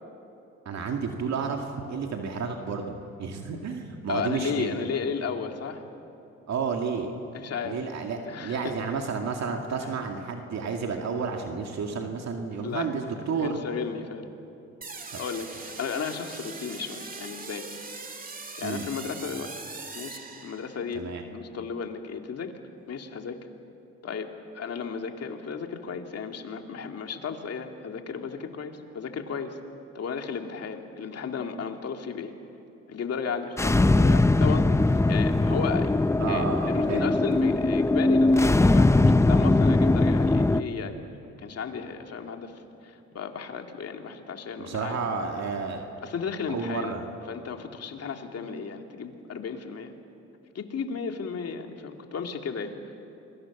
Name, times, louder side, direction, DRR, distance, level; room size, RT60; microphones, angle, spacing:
voice 1, 0.7-4.9 6.5-7.1 7.6-13.6 15.1-15.2 18.6-18.8 20.9-21.2 36.2-37.1 44.6-45.9 46.5-47.0, right 5 dB, 65° right, 3 dB, 2.3 m, -31 dB
voice 2, 4.1-5.8 7.3-7.8 8.3-8.8 9.8-9.9 12.6-12.9 13.4-14.2 15.2-17.7 18.6-19.5 19.9-22.5 22.9-23.4 24.0-29.6 29.9-32.3 32.9-35.9 36.3-45.0 46.0-46.9 47.3-49.9 50.5-52.7, left 6 dB, 55° left, 4 dB, 2.4 m, -34 dB
sound 1, 14.8-21.0, right 3 dB, 30° right, 2.3 m, -41 dB
sound 2, 33.6-40.6, left 2 dB, 10° left, 0.6 m, -21 dB
28.0 x 22.5 x 7.2 m, 2.9 s
cardioid pair, 90°, 30 cm